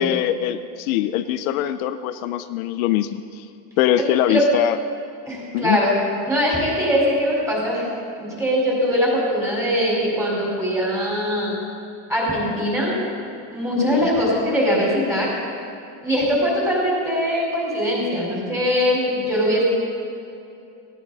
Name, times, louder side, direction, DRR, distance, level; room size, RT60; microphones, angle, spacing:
voice 1, 0.0-3.5 3.8-4.8 5.5-5.8 13.8-14.1, left 12 dB, 80° left, 10 dB, 0.8 m, -22 dB
voice 2, 5.3-6.0 6.3-7.9 8.2-11.5 12.1-12.9 13.5-15.3 16.0-19.6, equal, 5° right, -5 dB, 4.8 m, -21 dB
18.5 x 17.5 x 4.2 m, 2.7 s
cardioid pair, 170°, 42 cm